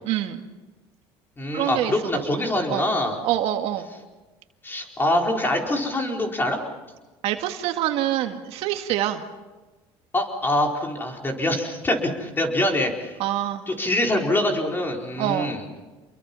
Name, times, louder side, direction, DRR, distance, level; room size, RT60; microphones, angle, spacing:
voice 1, 0.0-0.5 1.5-1.9 2.4-2.9 3.2-3.9 7.2-9.2 13.2-13.6 15.2-15.5, right 12 dB, 70° right, 5 dB, 2.0 m, -26 dB
voice 2, 1.4-3.2 4.6-6.6 10.1-13.1 13.7-15.8, left 1 dB, 20° left, 1 dB, 4.7 m, -24 dB
28.0 x 22.5 x 5.6 m, 1.2 s
supercardioid pair, 105°, 11 cm